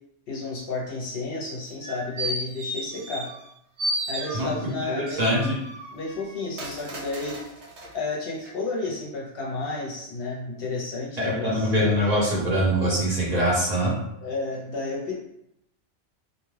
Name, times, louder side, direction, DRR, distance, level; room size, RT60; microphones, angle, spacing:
voice 1, 0.3-3.3 4.1-5.5 5.9-7.4 7.9-12.4 14.2-15.1, left 3 dB, 60° left, -3 dB, 0.8 m, -32 dB
sound 1, 1.6-3.5 3.8-4.8 5.3-7.9 8.4-8.5, right 1 dB, 75° right, 1.0 m, -33 dB
voice 2, 4.8-5.4 11.2-13.9, equal, 40° right, -7 dB, 0.8 m, -23 dB
2.6 x 2.3 x 3.1 m, 0.79 s
omnidirectional pair, 1.2 m